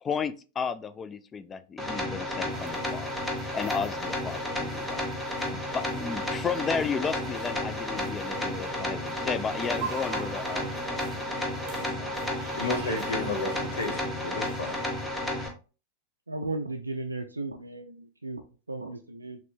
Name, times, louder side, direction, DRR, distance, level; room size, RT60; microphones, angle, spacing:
voice 1, 0.0-3.1 3.5-5.0 5.5-11.0, left 6 dB, 20° left, 0.3 m, -33 dB
sound 1, 1.8-15.5, left 1 dB, 5° left, 1.0 m, -32 dB
sound 2, 2.5-15.1, right 6 dB, 45° right, 0.7 m, -43 dB
voice 2, 12.5-14.8, left 3 dB, 65° left, 0.8 m, -32 dB
voice 3, 16.3-19.4, right 2 dB, 80° right, 0.3 m, -35 dB
4.2 x 3.0 x 2.7 m
figure-of-eight pair, 90°, 0 cm